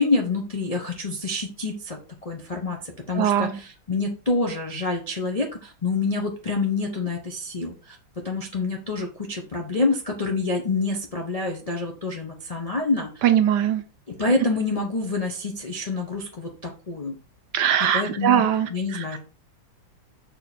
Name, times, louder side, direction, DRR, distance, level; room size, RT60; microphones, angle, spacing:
voice 1, 0.0-2.0 2.2-8.0 8.2-13.2 14.2-17.1 17.9-18.4 18.7-19.2, left 3 dB, 70° left, 0 dB, 0.3 m, -27 dB
voice 2, 3.1-3.6 13.2-13.8 17.5-19.2, right 10 dB, 70° right, 9 dB, 1.1 m, -21 dB
6.9 x 3.9 x 4.1 m, 0.37 s
omnidirectional pair, 2.2 m